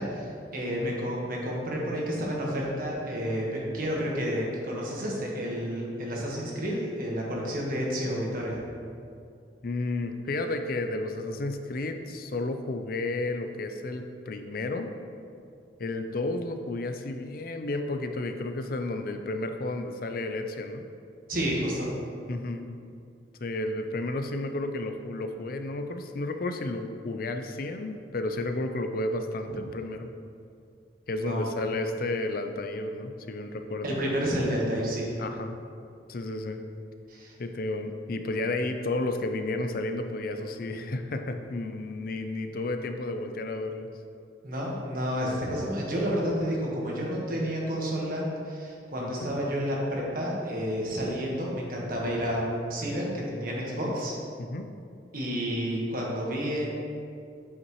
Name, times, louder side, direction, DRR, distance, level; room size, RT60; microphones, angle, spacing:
voice 1, 0.0-8.6 21.3-21.9 31.2-31.4 33.8-35.1 37.1-37.3 44.4-54.2 55.1-56.7, equal, 55° right, -3 dB, 1.4 m, -30 dB
voice 2, 9.6-14.9 15.8-20.8 22.3-22.7 23.4-30.1 31.1-34.0 35.2-35.6 36.1-36.6 37.4-43.9 49.0-49.3 54.4-54.7, left 2 dB, 55° left, 6 dB, 0.5 m, -32 dB
8.2 x 5.8 x 3.1 m, 2.4 s
head